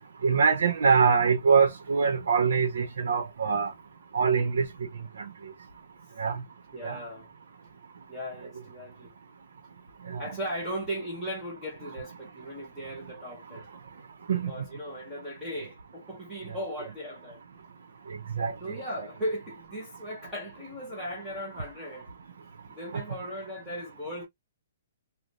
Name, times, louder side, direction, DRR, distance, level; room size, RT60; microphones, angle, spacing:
voice 1, 0.2-3.7 4.1-4.6 6.2-6.3 6.8-7.0 10.1-10.2 14.3-14.5 18.4-18.5, right 5 dB, 70° right, 0.9 m, -23 dB
voice 2, 6.7-7.3 8.1-9.1 10.2-13.7 14.5-17.4 18.6-22.1 22.7-24.3, equal, ahead, 0.8 m, -37 dB
3.2 x 2.2 x 2.6 m
hypercardioid pair, 180°, 0 cm